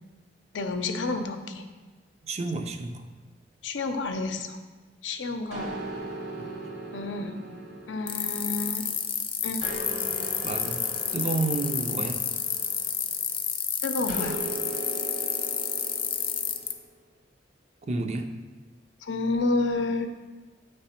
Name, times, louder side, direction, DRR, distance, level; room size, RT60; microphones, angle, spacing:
voice 1, 0.5-1.6 3.6-4.6 5.0-5.7 6.9-7.4 7.9-8.9 9.4-9.6 13.8-14.4 19.0-20.1, left 3 dB, 85° left, 6 dB, 0.6 m, -29 dB
voice 2, 2.2-3.1 6.4-6.5 10.4-12.3 17.9-18.4, right 3 dB, 35° right, 6 dB, 0.5 m, -31 dB
sound 1, 5.5-9.1 9.6-13.3 14.1-16.8, right 2 dB, 65° right, 1.3 m, -39 dB
sound 2, 8.1-16.7, left 8 dB, 30° left, 0.5 m, -29 dB
8.9 x 3.3 x 4.3 m, 1.3 s
head